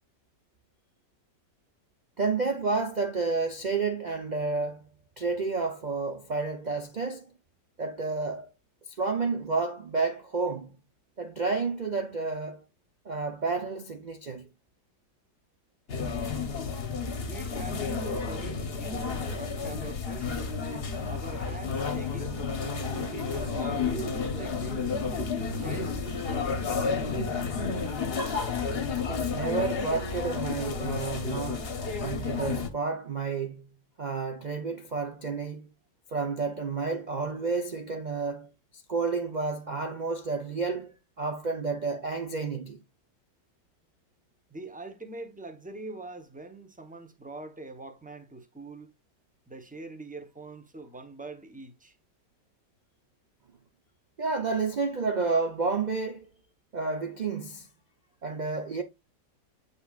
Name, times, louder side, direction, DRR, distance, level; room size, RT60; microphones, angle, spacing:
voice 1, 2.2-4.8 5.2-7.3 7.8-8.5 8.9-10.8 11.2-12.6 13.0-14.5 29.1-31.7 32.0-35.7 36.1-42.8 54.2-56.3 56.7-57.7 58.2-58.8, right 4 dB, 70° right, 0.4 m, -30 dB
sound 1, 15.9-32.7, left 5 dB, 40° left, 1.0 m, -31 dB
voice 2, 17.2-20.3 21.1-22.5 22.7-24.9 25.6-26.8 44.5-48.9 49.5-52.0, right 2 dB, 10° right, 0.5 m, -43 dB
Bowed string instrument, 21.9-26.6, right 10 dB, 55° right, 2.1 m, -48 dB
8.2 x 5.5 x 2.4 m
omnidirectional pair, 1.8 m